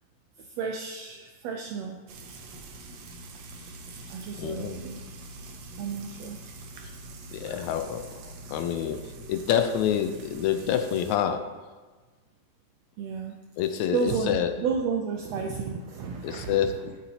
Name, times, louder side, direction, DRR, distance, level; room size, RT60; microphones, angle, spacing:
voice 1, 0.4-2.0 4.1-5.0 5.8-6.4 7.4-7.6 13.0-13.4 13.9-16.9, right 5 dB, 85° right, 3 dB, 1.5 m, -32 dB
Frying (food), 2.1-11.2, right 2 dB, 65° right, 1.9 m, -44 dB
voice 2, 4.4-4.8 7.3-11.5 13.6-14.5 16.2-16.8, left 9 dB, 80° left, 8 dB, 1.7 m, -27 dB
14.0 x 8.0 x 2.8 m, 1.3 s
omnidirectional pair, 3.6 m